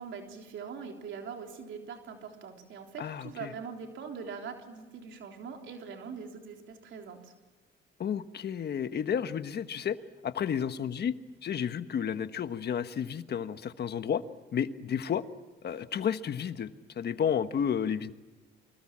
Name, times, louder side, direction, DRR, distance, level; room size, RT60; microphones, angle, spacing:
voice 1, 0.0-7.3, right 6 dB, 75° right, 3 dB, 3.6 m, -42 dB
voice 2, 3.0-3.5 8.0-10.0 10.2-11.1 11.4-14.2 14.5-15.2 15.6-16.7 16.9-18.1, left 8 dB, 55° left, 10 dB, 1.4 m, -31 dB
29.5 x 24.5 x 7.5 m, 1.2 s
cardioid pair, 90°, 20 cm